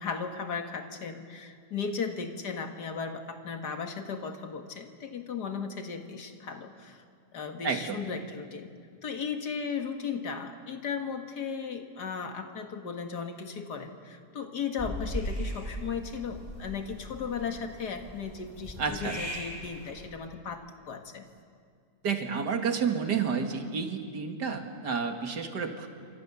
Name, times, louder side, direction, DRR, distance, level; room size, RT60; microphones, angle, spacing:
voice 1, 0.0-7.0 7.3-8.7 9.0-21.3, left 6 dB, 75° left, 6 dB, 2.3 m, -36 dB
voice 2, 7.6-8.0 18.8-19.2 22.0-25.9, right 6 dB, 75° right, 5 dB, 2.5 m, -30 dB
sound 1, 14.8-20.0, equal, 10° right, 7.0 m, -39 dB
28.5 x 25.5 x 7.1 m, 2.1 s
omnidirectional pair, 1.8 m